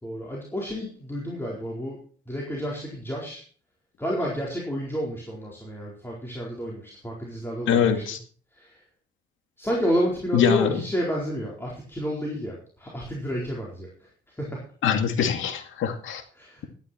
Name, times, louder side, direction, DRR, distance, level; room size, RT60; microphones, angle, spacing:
voice 1, 0.0-2.0 2.3-3.4 4.0-8.0 8.6-8.8 9.6-14.1 14.4-14.6 16.3-16.7, equal, 10° left, -3 dB, 4.3 m, -30 dB
voice 2, 7.7-8.2 10.3-10.7 14.8-16.2, left 8 dB, 80° left, 6 dB, 2.3 m, -23 dB
12.5 x 11.5 x 4.5 m, 0.43 s
cardioid pair, 90°, 20 cm